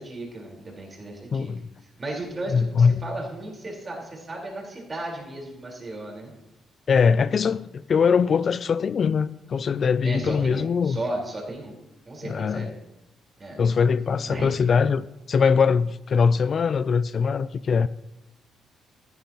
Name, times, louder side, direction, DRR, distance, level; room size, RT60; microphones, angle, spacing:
voice 1, 0.0-1.5 2.0-6.3 10.0-11.7 12.1-12.7 13.4-13.6 14.2-14.6, right 2 dB, 30° right, 4.2 m, -35 dB
voice 2, 1.3-1.6 2.5-3.0 6.9-11.0 12.2-12.7 13.6-17.9, left 6 dB, 50° left, 0.3 m, -22 dB
13.5 x 11.5 x 2.9 m
cardioid pair, 90°, 0 cm